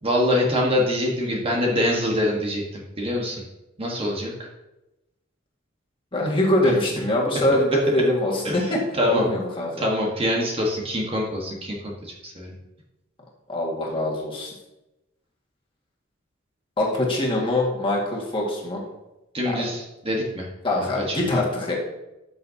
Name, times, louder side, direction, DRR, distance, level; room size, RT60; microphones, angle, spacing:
voice 1, 0.0-3.4 3.8-4.5 7.5-7.6 7.9-8.0 8.4-9.3 9.8-12.5 19.3-20.5 21.1-21.3, left 1 dB, 30° right, -2 dB, 1.5 m, -25 dB
voice 2, 6.1-8.8 9.1-9.8 13.5-14.5 16.8-18.8 20.6-21.7, left 1 dB, 25° left, -3 dB, 2.0 m, -23 dB
13.0 x 6.4 x 2.9 m, 0.97 s
head